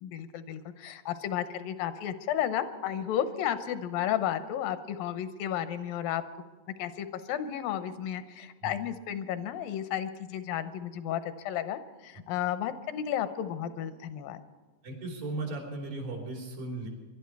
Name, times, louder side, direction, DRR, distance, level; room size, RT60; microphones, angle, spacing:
voice 1, 0.0-6.2 6.8-14.4, left 10 dB, 85° left, 11 dB, 2.5 m, -33 dB
voice 2, 14.8-16.9, right 2 dB, 85° right, 0 dB, 5.0 m, -36 dB
23.5 x 12.0 x 4.7 m, 1.4 s
omnidirectional pair, 4.0 m